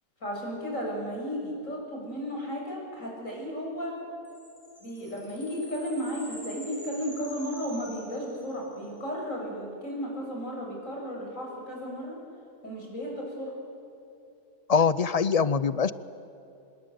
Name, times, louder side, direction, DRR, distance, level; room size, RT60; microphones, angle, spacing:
voice 1, 0.2-4.0 4.8-12.2 12.6-13.5, equal, 75° left, -1 dB, 7.5 m, -34 dB
sound 1, 4.2-8.9, equal, 10° left, 5.5 m, -47 dB
voice 2, 14.7-15.9, left 6 dB, 45° left, 16 dB, 0.5 m, -23 dB
26.0 x 21.5 x 9.2 m, 2.8 s
omnidirectional pair, 1.4 m